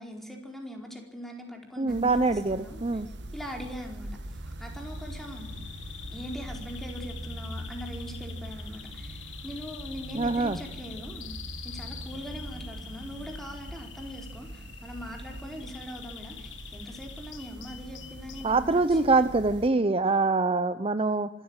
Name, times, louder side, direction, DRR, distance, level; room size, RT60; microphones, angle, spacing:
voice 1, 0.0-3.0 3.3-5.5 6.1-11.3 11.6-19.2, equal, ahead, 2 dB, 4.6 m, -41 dB
voice 2, 1.8-3.1 10.1-10.6 18.4-21.3, right 3 dB, 30° right, 11 dB, 0.7 m, -24 dB
sound 1, 1.9-19.7, right 1 dB, 60° right, 1.7 m, -42 dB
Bird vocalization bird call bird song, 4.6-18.6, left 10 dB, 80° left, 1.7 m, -47 dB
25.0 x 14.0 x 9.0 m, 0.87 s
head